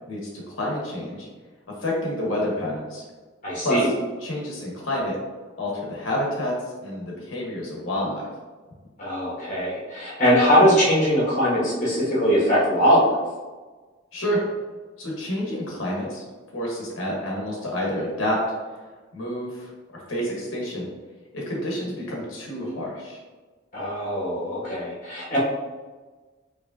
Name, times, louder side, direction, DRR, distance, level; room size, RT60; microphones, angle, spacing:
voice 1, 0.1-1.3 1.8-3.0 3.6-3.9 4.2-5.2 5.6-6.5 6.8-8.3 14.1-14.4 15.0-16.2 16.5-18.4 19.1-20.9 21.3-23.2, equal, 90° left, -3 dB, 1.1 m, -28 dB
voice 2, 3.4-3.9 9.0-13.2 23.7-25.4, equal, 40° left, -6 dB, 1.2 m, -21 dB
4.9 x 3.0 x 2.6 m, 1.3 s
head